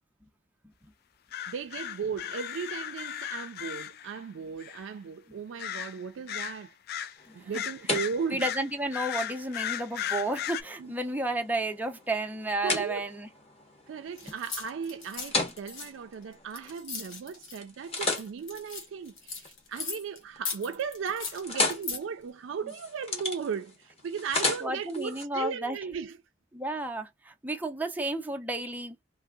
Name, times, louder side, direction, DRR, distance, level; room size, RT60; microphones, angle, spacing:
sound 1, 1.3-4.2 4.6-4.8 5.6-6.0 6.3-7.2 7.5-10.6, left 10 dB, 55° left, 0.3 m, -36 dB
voice 1, 1.5-6.8 7.0-8.5 10.8-10.9 12.6-13.1 13.9-26.1, right 6 dB, 80° right, 0.4 m, -36 dB
sound 2, 7.2-17.2 17.6-19.9 20.3-20.7 21.0-25.2, left 2 dB, 30° left, 1.1 m, -36 dB
voice 2, 8.3-13.3 14.2-14.3 24.6-25.8 26.5-29.0, right 2 dB, 10° right, 0.6 m, -32 dB
sound 3, 14.2-17.6 17.9-20.2 20.4-22.0, left 5 dB, 85° left, 1.3 m, -38 dB
3.2 x 2.7 x 2.3 m
head